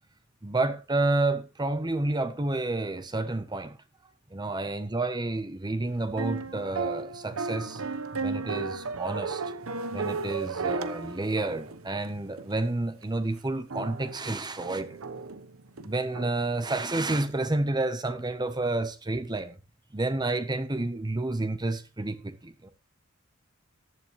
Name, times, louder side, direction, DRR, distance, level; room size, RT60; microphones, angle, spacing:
voice 1, 0.4-3.8 4.3-7.8 8.2-9.4 9.9-15.0 15.8-19.5 19.9-22.7, right 2 dB, 20° right, 0.9 m, -30 dB
sound 1, 6.1-12.6 13.0-13.1 13.7-16.3, right 4 dB, 80° right, 1.0 m, -34 dB
14.5 x 11.5 x 3.1 m
head